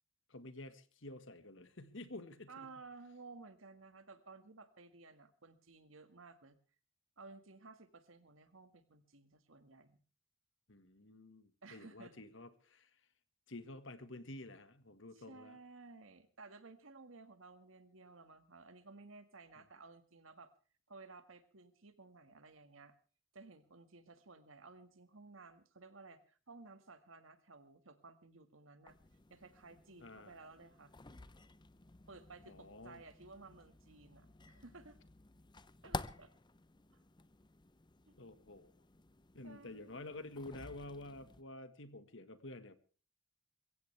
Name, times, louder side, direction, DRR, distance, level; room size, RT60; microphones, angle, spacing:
voice 1, 0.3-2.7 10.7-12.9 13.5-15.6 30.0-30.3 32.5-33.0 38.2-38.7 39.3-42.8, left 2 dB, 65° left, 11 dB, 1.7 m, -50 dB
voice 2, 2.5-6.6 7.2-10.0 11.6-12.2 15.1-20.5 20.9-22.9 23.3-29.0 29.3-30.9 32.1-35.0 35.8-36.3 36.9-37.0 38.1-38.2 39.4-40.1, right 3 dB, 85° right, 9 dB, 1.9 m, -56 dB
sound 1, 28.9-41.4, left 3 dB, 25° left, 0.7 m, -52 dB
22.5 x 16.0 x 3.4 m, 0.38 s
head